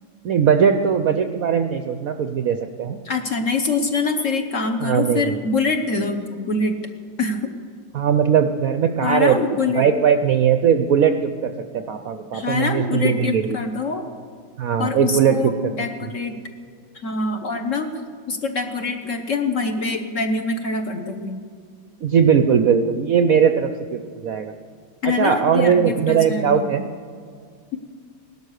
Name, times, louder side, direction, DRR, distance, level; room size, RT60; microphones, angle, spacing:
voice 1, 0.2-3.0 4.8-5.4 7.9-9.4 9.7-13.6 14.6-15.5 22.0-24.5 25.0-26.9, right 7 dB, 70° right, 7 dB, 0.8 m, -19 dB
voice 2, 3.0-6.8 7.2-7.5 9.0-9.9 12.3-14.1 14.8-15.5 15.8-16.4 17.0-17.9 18.3-21.4 25.0-26.7, left 4 dB, 50° left, 5 dB, 1.1 m, -24 dB
18.0 x 12.5 x 6.5 m, 2.1 s
omnidirectional pair, 2.1 m